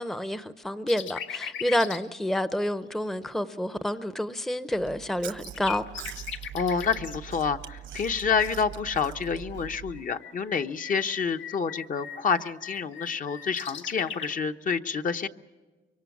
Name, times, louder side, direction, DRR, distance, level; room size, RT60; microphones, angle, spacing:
voice 1, 0.0-5.8, left 1 dB, ahead, 0.7 m, -29 dB
sound 1, 0.9-2.0 2.6-2.7 4.9-5.1 5.4-7.2 9.9-14.3, left 8 dB, 90° left, 1.5 m, -38 dB
Chewing mastication, 4.7-10.0, right 11 dB, 80° right, 1.2 m, -42 dB
voice 2, 6.5-15.3, left 5 dB, 45° left, 0.9 m, -28 dB
25.0 x 23.5 x 7.2 m
cardioid pair, 135°, 19 cm